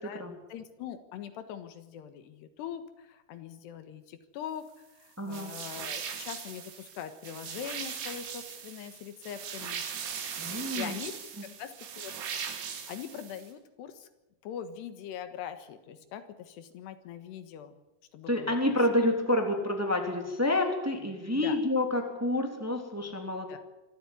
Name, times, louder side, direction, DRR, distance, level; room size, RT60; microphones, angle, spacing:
voice 1, 0.5-4.7 4.9-9.8 10.7-11.1 11.6-12.1 12.9-14.1 14.4-17.8 18.1-18.6 21.4-21.6 23.5-23.6, left 9 dB, 85° left, 10 dB, 3.6 m, -42 dB
voice 2, 5.2-5.5 10.4-11.0 18.3-23.6, left 1 dB, 5° right, 4 dB, 2.4 m, -28 dB
sound 1, 5.3-13.5, right 7 dB, 80° right, 4.7 m, -39 dB
26.0 x 13.5 x 9.6 m, 1.0 s
omnidirectional pair, 4.7 m